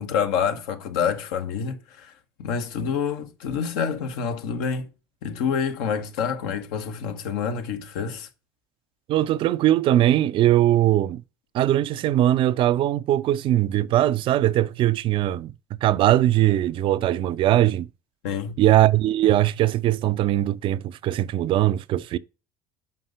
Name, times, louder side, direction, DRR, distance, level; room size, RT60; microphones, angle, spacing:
voice 1, 0.0-2.1 2.4-4.9 5.2-8.3 18.2-18.6, left 7 dB, 65° left, 1.1 m, -27 dB
voice 2, 9.1-11.2 11.5-15.5 15.8-17.9 18.6-22.2, right 13 dB, 45° right, 0.4 m, -20 dB
5.7 x 5.4 x 6.6 m
figure-of-eight pair, 60°, 12 cm